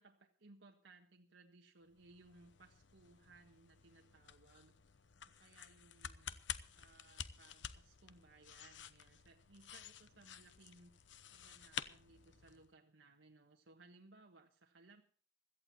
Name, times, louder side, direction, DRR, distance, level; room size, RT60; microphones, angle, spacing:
voice 1, 0.0-6.3 6.7-15.0, right 3 dB, 85° right, 2 dB, 1.5 m, -64 dB
sound 1, 1.9-12.7, left 9 dB, 70° left, 0.9 m, -51 dB
17.0 x 14.0 x 4.3 m, 0.43 s
head